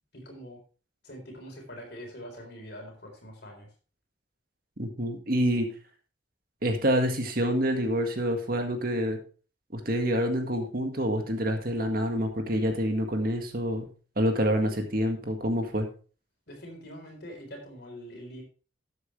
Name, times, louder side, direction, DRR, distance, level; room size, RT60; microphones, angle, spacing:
voice 1, 0.1-0.6 1.0-3.7 16.5-18.4, equal, 55° left, 2 dB, 3.9 m, -44 dB
voice 2, 4.8-5.7 6.6-9.2 9.7-13.9 14.2-15.9, equal, 50° right, 4 dB, 1.8 m, -27 dB
13.0 x 7.9 x 3.3 m, 0.37 s
head